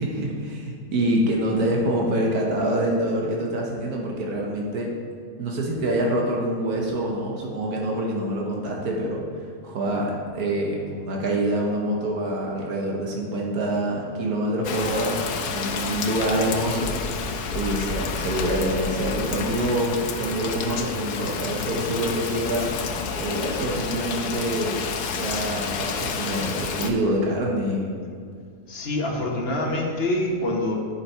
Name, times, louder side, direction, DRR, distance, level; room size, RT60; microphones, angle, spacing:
voice 1, 0.0-4.9 5.4-9.2 9.6-15.2 15.5-22.7 23.2-24.8 25.2-27.9, right 1 dB, 90° right, -1 dB, 1.6 m, -26 dB
Rain, 14.6-26.9, left 5 dB, 80° left, 1.1 m, -29 dB
voice 2, 28.7-30.7, left 1 dB, 45° left, 0 dB, 1.3 m, -25 dB
8.1 x 5.9 x 4.5 m, 2.2 s
omnidirectional pair, 1.6 m